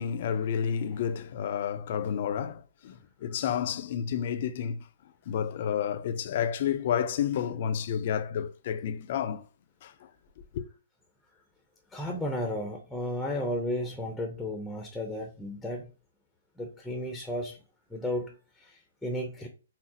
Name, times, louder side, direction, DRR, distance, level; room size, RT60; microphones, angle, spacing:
voice 1, 0.0-4.9 5.3-9.4 9.8-10.1 10.5-10.6, left 8 dB, 50° left, 0.5 m, -30 dB
voice 2, 11.9-15.9 16.6-17.6 17.9-19.5, left 1 dB, 5° left, 0.7 m, -34 dB
5.7 x 2.0 x 2.9 m
hypercardioid pair, 140°, 0 cm